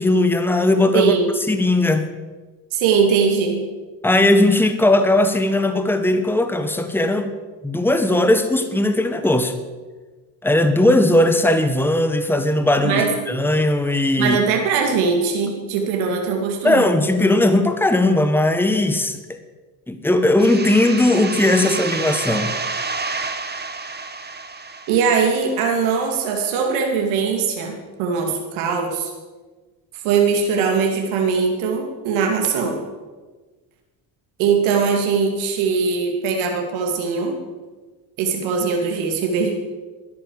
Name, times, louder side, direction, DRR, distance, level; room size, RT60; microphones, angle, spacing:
voice 1, 0.0-1.1 1.5-2.1 4.0-7.3 7.6-9.5 10.4-14.4 16.6-19.2 19.9-22.5, left 1 dB, 5° left, 9 dB, 1.5 m, -18 dB
voice 2, 0.9-1.3 2.7-3.7 12.8-13.1 14.2-16.9 24.9-29.1 30.0-32.8 34.4-37.4 38.2-39.5, right 5 dB, 70° right, 2 dB, 2.5 m, -21 dB
sound 1, 20.4-25.9, right 4 dB, 20° right, 1.4 m, -29 dB
12.5 x 10.5 x 7.3 m, 1.3 s
hypercardioid pair, 70°, 50 cm